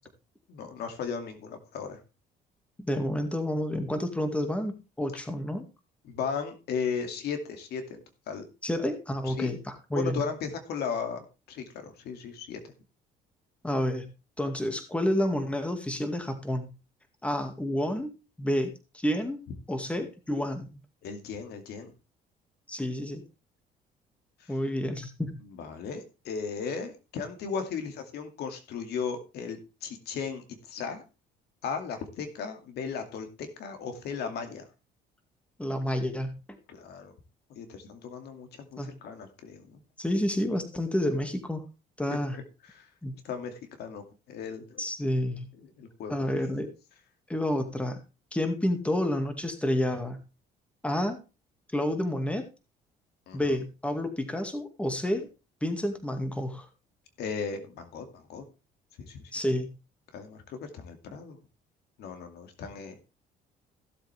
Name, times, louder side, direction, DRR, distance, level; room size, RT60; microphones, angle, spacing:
voice 1, 0.5-2.0 5.1-5.2 6.0-8.4 9.2-9.5 9.9-12.7 21.0-21.9 24.4-24.6 25.4-31.0 31.6-34.7 36.7-37.1 37.5-39.8 40.5-40.6 42.1-42.9 43.2-44.8 45.5-46.6 53.3-53.6 57.2-58.4 59.0-59.2 60.1-61.4 62.0-63.0, left 6 dB, 75° left, 6 dB, 2.4 m, -36 dB
voice 2, 2.8-5.6 8.6-10.2 13.6-14.1 14.4-16.7 17.2-18.1 18.4-19.4 19.7-20.7 22.7-23.2 24.5-25.4 35.6-36.4 38.8-38.9 40.0-41.6 42.0-42.4 43.0-43.2 44.8-45.5 46.1-46.7 47.3-48.0 48.3-50.2 50.8-51.2 51.7-52.4 53.3-55.3 55.6-56.7 59.3-59.7, left 1 dB, 5° left, 7 dB, 2.1 m, -29 dB
16.0 x 7.6 x 3.5 m, 0.29 s
cardioid pair, 110°, 17 cm